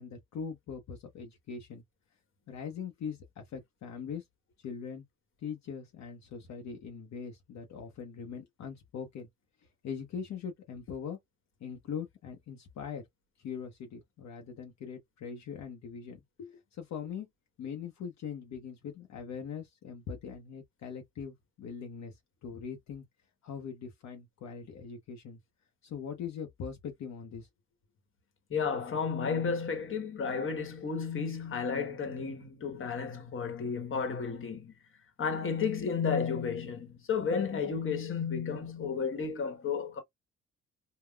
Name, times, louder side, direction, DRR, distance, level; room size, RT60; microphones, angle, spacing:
voice 1, 0.0-1.8 2.5-4.2 4.6-5.0 5.4-9.3 9.8-11.2 11.6-13.0 13.4-17.3 17.6-23.0 23.4-25.4 25.8-27.5, left 6 dB, 65° left, 0.8 m, -41 dB
voice 2, 28.5-34.7 35.2-40.0, left 6 dB, 45° left, 1.2 m, -32 dB
3.6 x 2.2 x 2.3 m
cardioid pair, 90°, 30 cm